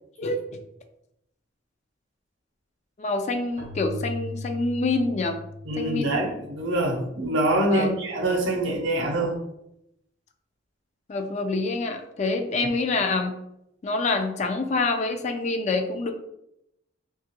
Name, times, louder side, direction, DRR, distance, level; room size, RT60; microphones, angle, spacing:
voice 1, 3.0-5.4 5.8-6.2 7.7-8.0 11.1-13.3 13.8-16.1, left 3 dB, 35° left, 5 dB, 0.3 m, -26 dB
Keyboard (musical), 3.6-7.1, left 2 dB, 35° right, 0.6 m, -38 dB
voice 2, 5.6-9.4, right 1 dB, 75° right, 2 dB, 0.6 m, -25 dB
2.9 x 2.3 x 2.8 m, 0.81 s
head